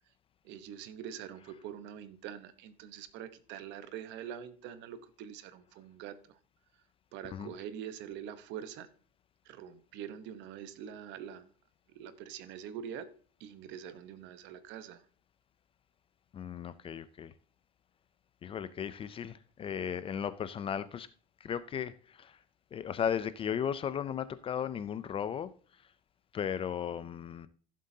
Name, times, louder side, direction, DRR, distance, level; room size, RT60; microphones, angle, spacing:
voice 1, 0.4-6.4 7.1-8.9 9.4-11.5 11.9-13.1 13.4-15.0, right 9 dB, 60° right, 1.0 m, -44 dB
voice 2, 16.3-17.3 18.4-21.1 21.4-22.4 22.7-25.5 26.3-27.5, left 8 dB, 25° left, 0.4 m, -36 dB
15.0 x 7.5 x 2.8 m
cardioid pair, 140°, 21 cm